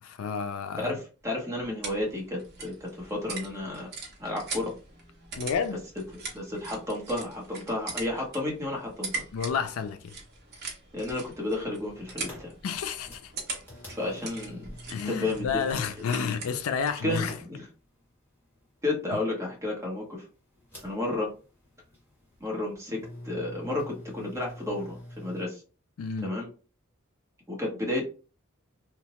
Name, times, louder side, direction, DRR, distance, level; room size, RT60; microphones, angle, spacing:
voice 1, 0.0-0.9 5.4-5.8 9.3-10.2 12.6-13.3 14.9-17.4 19.1-19.2 26.0-26.3, left 6 dB, 75° left, 0.4 m, -30 dB
voice 2, 0.8-3.9 4.2-4.7 6.3-9.2 10.9-12.5 13.9-14.7 15.0-15.5 17.0-17.7 18.8-20.2 20.8-21.3 22.4-23.0 23.2-25.6 26.2-26.5 27.5-28.0, left 2 dB, 15° right, 0.8 m, -32 dB
sound 1, 1.2-17.1, right 3 dB, 50° right, 0.8 m, -42 dB
sound 2, 11.4-25.5, left 1 dB, 10° left, 1.5 m, -48 dB
2.8 x 2.1 x 2.9 m
head